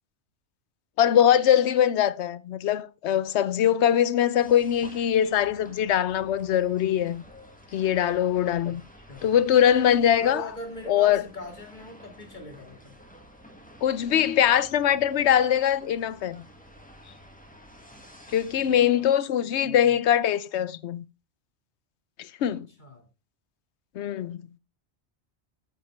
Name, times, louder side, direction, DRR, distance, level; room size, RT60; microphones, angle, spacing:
voice 1, 1.0-7.2 7.7-8.8 9.2-10.4 10.9-11.2 13.8-16.4 18.3-21.0 22.2-22.7 24.0-24.4, left 10 dB, 80° left, 0.9 m, -22 dB
sound 1, 4.3-18.9, equal, 5° left, 1.7 m, -51 dB
voice 2, 10.2-13.0 18.7-20.0 22.8-23.1, left 1 dB, 45° left, 2.2 m, -42 dB
9.7 x 8.4 x 3.3 m
omnidirectional pair, 1.1 m